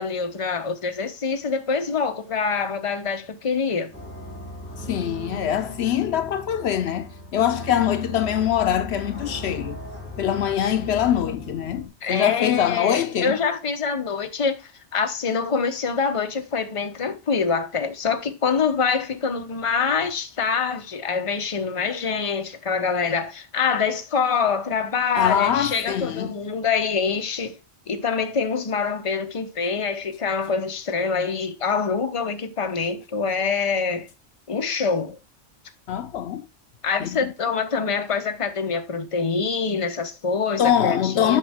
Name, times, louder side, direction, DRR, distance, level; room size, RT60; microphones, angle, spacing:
voice 1, 0.0-3.9 12.0-14.6 14.9-27.6 27.9-34.1 34.5-35.2 36.8-41.4, left 5 dB, 30° left, 0.8 m, -25 dB
sound 1, 3.9-11.9, equal, 10° left, 2.5 m, -37 dB
voice 2, 4.8-9.8 10.2-13.4 25.2-26.4 35.9-36.5 37.0-37.3 40.6-41.4, left 9 dB, 75° left, 0.8 m, -23 dB
8.5 x 5.3 x 3.5 m
omnidirectional pair, 1.1 m